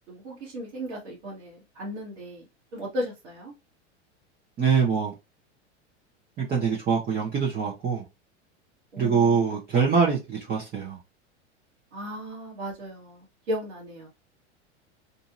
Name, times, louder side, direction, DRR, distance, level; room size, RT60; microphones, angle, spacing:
voice 1, 0.1-2.5 2.7-3.5 8.9-9.6 11.9-14.1, equal, 75° right, 1.4 m, -35 dB
voice 2, 4.6-5.1 6.4-8.0 9.0-11.0, right 6 dB, 25° right, 0.8 m, -24 dB
2.8 x 2.6 x 2.5 m
hypercardioid pair, 100°, 35 cm